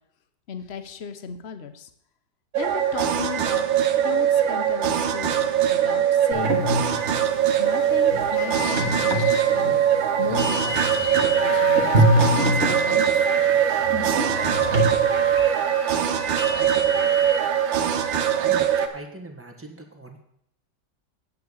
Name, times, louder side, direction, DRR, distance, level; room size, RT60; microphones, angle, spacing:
voice 1, 0.5-1.9 2.5-3.6 4.0-7.0 7.6-9.8 10.2-10.8 11.2-12.3 12.6-13.3 14.5-15.0 16.5-16.8, left 6 dB, 50° left, 10 dB, 0.8 m, -36 dB
sound 1, 2.5-18.9, right 9 dB, 85° right, 1.6 m, -22 dB
sound 2, 6.3-14.8, right 1 dB, 40° right, 1.7 m, -26 dB
sound 3, 8.4-17.4, left 2 dB, 85° left, 2.3 m, -31 dB
voice 2, 18.5-20.2, right 1 dB, 10° right, 3 dB, 1.1 m, -41 dB
9.3 x 5.8 x 8.1 m, 0.73 s
omnidirectional pair, 2.0 m